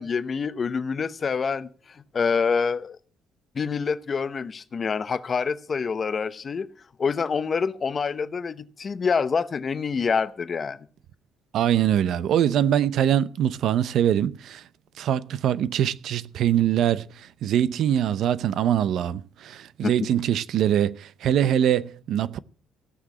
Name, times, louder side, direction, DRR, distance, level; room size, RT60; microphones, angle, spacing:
voice 1, 0.0-3.0 3.5-6.7 7.0-10.8 19.8-19.9, left 5 dB, 30° left, 0.8 m, -26 dB
voice 2, 11.5-14.6 15.0-22.4, right 10 dB, 65° right, 0.7 m, -23 dB
16.0 x 6.2 x 8.4 m
cardioid pair, 150°, 0 cm